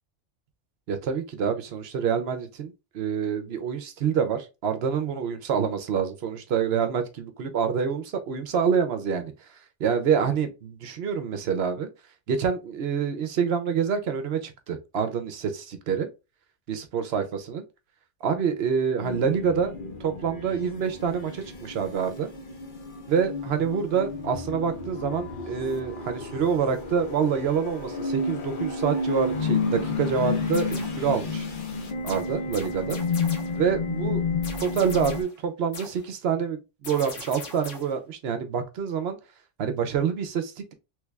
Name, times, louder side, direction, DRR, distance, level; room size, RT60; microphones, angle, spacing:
voice 1, 0.9-9.3 9.8-11.9 12.3-16.1 16.7-17.6 18.2-19.7 20.0-22.3 23.1-31.5 32.0-33.0 33.5-34.2 34.6-39.2 39.6-40.7, right 7 dB, 65° right, 0.8 m, -27 dB
sound 1, 19.0-35.2, left 4 dB, 50° left, 0.8 m, -31 dB
sound 2, 30.5-31.1 32.1-33.6 34.4-35.4 35.7-36.1 36.8-38.0, left 3 dB, 85° left, 1.4 m, -41 dB
3.3 x 3.2 x 2.3 m
omnidirectional pair, 1.2 m